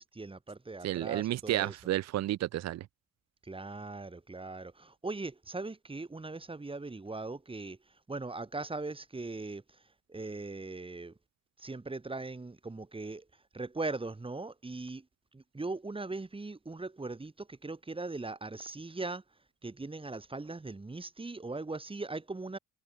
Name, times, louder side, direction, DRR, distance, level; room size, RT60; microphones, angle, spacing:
voice 1, 0.0-1.7 3.4-7.8 8.1-9.6 10.1-11.1 11.6-13.2 13.5-15.0 15.3-19.2 19.6-22.6, right 3 dB, 20° right, 2.5 m, -39 dB
voice 2, 0.8-2.9, right 14 dB, 60° right, 0.6 m, -31 dB
cardioid pair, 90°, 30 cm